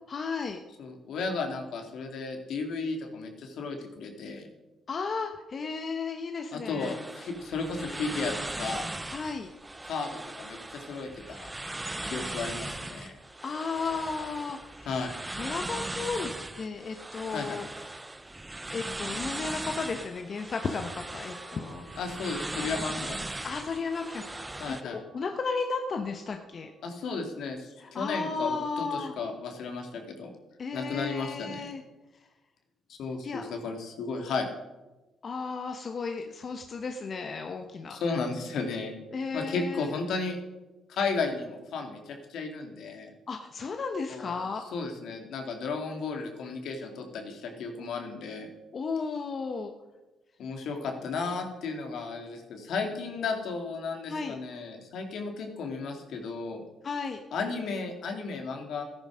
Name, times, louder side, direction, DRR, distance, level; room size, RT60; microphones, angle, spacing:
voice 1, 0.1-0.6 4.9-7.0 9.1-9.5 13.4-14.9 15.4-17.7 18.7-21.9 23.4-24.5 24.9-26.7 27.8-29.1 30.6-31.8 33.2-33.4 35.2-38.0 39.1-39.9 43.3-44.6 48.7-49.7 54.1-54.3 56.8-57.2, left 4 dB, 45° left, 5 dB, 1.1 m, -34 dB
voice 2, 0.8-4.5 6.5-8.9 9.8-11.5 12.0-13.1 14.9-15.1 17.3-17.6 22.0-23.5 24.6-25.0 26.8-30.3 30.7-31.7 32.9-34.5 37.9-39.0 39.3-40.4 40.9-43.1 44.1-44.4 44.7-48.5 50.4-56.6 57.3-58.8, left 4 dB, 75° left, 4 dB, 2.4 m, -34 dB
sound 1, 6.8-24.8, right 2 dB, 15° right, 0.7 m, -39 dB
sound 2, 20.6-27.5, right 3 dB, 75° right, 2.2 m, -56 dB
13.5 x 10.0 x 6.3 m, 1.1 s
cardioid pair, 90°, 0 cm